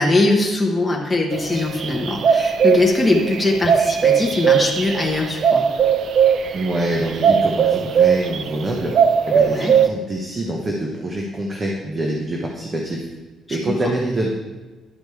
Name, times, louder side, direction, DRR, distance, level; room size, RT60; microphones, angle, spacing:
voice 1, 0.0-5.6 9.4-9.7, left 2 dB, 10° left, -1 dB, 1.0 m, -20 dB
sound 1, 1.3-8.6 8.9-9.9, right 7 dB, 45° right, 0.4 m, -18 dB
voice 2, 6.5-8.9 9.3-13.1 13.5-14.3, right 1 dB, 20° right, -1 dB, 0.9 m, -25 dB
11.0 x 5.1 x 4.7 m, 1.2 s
cardioid pair, 160°, 0 cm